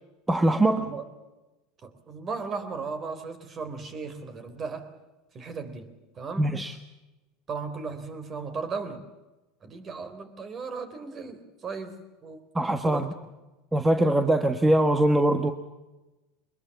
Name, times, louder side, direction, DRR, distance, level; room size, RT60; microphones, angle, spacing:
voice 1, 0.3-0.9 6.4-6.7 12.5-13.1 13.7-15.5, right 1 dB, 10° right, 7 dB, 1.5 m, -22 dB
voice 2, 1.8-4.9 5.3-5.9 6.1-6.5 7.5-9.0 9.6-12.4 12.8-13.0, right 4 dB, 35° right, 10 dB, 3.9 m, -36 dB
22.5 x 21.5 x 7.2 m, 1.1 s
hypercardioid pair, 95°, 0 cm